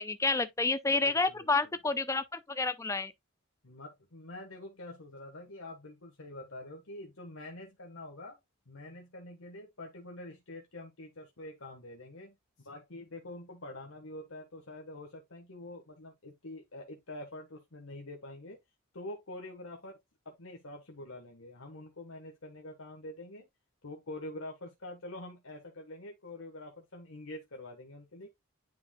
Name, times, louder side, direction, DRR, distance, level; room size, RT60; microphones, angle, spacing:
voice 1, 0.0-3.1, left 3 dB, 15° left, 0.5 m, -29 dB
voice 2, 1.0-1.5 3.6-8.4 8.7-18.6 18.9-20.0 20.2-23.5 23.8-28.3, left 1 dB, 70° left, 1.4 m, -46 dB
9.7 x 4.7 x 2.3 m
head